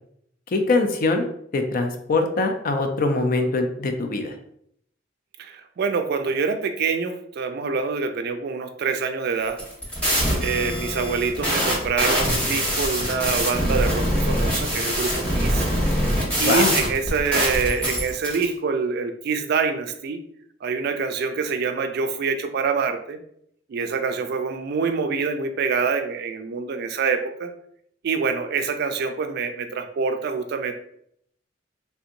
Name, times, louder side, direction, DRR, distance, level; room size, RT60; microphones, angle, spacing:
voice 1, 0.5-1.2 1.5-4.3 10.6-10.7 16.4-16.8, left 3 dB, 50° left, 6 dB, 0.5 m, -23 dB
voice 2, 5.4-9.6 10.4-15.7 16.0-20.2 20.6-23.2 23.7-27.5 28.0-30.7, right 5 dB, 55° right, 7 dB, 0.4 m, -26 dB
sound 1, 9.5-18.4, equal, 5° left, 1.2 m, -23 dB
3.3 x 2.8 x 2.5 m, 0.69 s
head